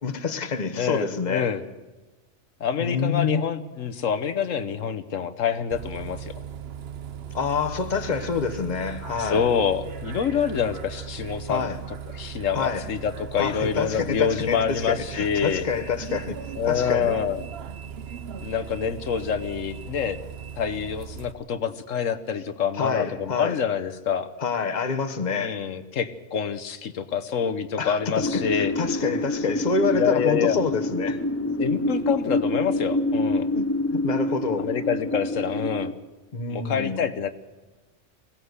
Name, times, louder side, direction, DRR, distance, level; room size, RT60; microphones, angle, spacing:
voice 1, 0.0-1.5 2.8-3.4 7.3-9.5 11.5-11.8 12.5-12.9 13.4-16.4 16.7-17.1 22.8-23.6 24.4-25.6 27.8-31.2 33.5-34.7 36.3-37.0, left 5 dB, 35° left, 1.2 m, -27 dB
voice 2, 0.8-1.6 2.6-6.3 9.2-11.7 12.1-15.7 16.6-17.4 18.4-20.2 20.6-24.3 25.3-28.7 29.9-30.6 31.6-33.5 34.6-35.9 36.5-37.3, left 7 dB, 85° left, 1.3 m, -26 dB
Bus, 5.7-21.3, right 8 dB, 55° right, 1.1 m, -38 dB
sound 1, 28.2-35.9, left 1 dB, 15° left, 0.6 m, -27 dB
22.0 x 17.0 x 8.1 m
omnidirectional pair, 1.3 m